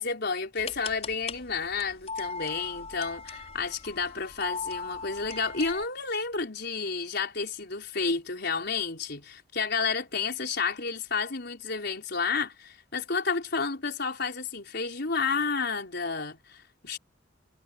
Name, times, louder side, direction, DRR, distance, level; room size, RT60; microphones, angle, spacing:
voice 1, 0.0-17.0, left 4 dB, 60° left, 4.6 m, -31 dB
sound 1, 0.5-5.9, left 4 dB, 35° left, 6.0 m, -39 dB
head